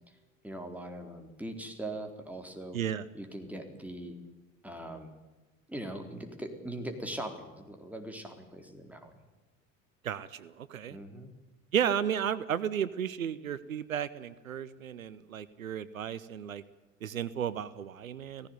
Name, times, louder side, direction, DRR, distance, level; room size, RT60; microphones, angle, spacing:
voice 1, 0.4-2.8 3.1-4.2 4.6-5.1 5.7-9.1 10.9-11.3, right 1 dB, 5° right, 4 dB, 4.1 m, -41 dB
voice 2, 2.7-3.0 10.0-11.0 11.7-16.6 17.0-18.5, right 9 dB, 90° right, 17 dB, 0.8 m, -33 dB
17.0 x 15.5 x 9.5 m, 1.2 s
hypercardioid pair, 70°, 40 cm